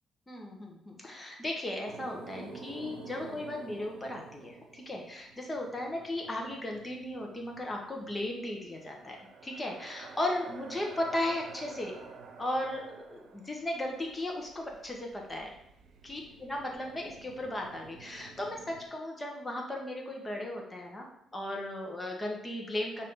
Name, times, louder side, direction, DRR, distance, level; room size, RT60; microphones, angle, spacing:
voice 1, 0.3-9.2 9.4-12.0 12.4-15.5 16.0-21.1 21.3-23.1, left 1 dB, 20° left, 0 dB, 1.4 m, -36 dB
sound 1, 1.8-18.9, right 4 dB, 70° right, 0.9 m, -50 dB
5.9 x 4.2 x 3.9 m, 0.76 s
cardioid pair, 90°, 0 cm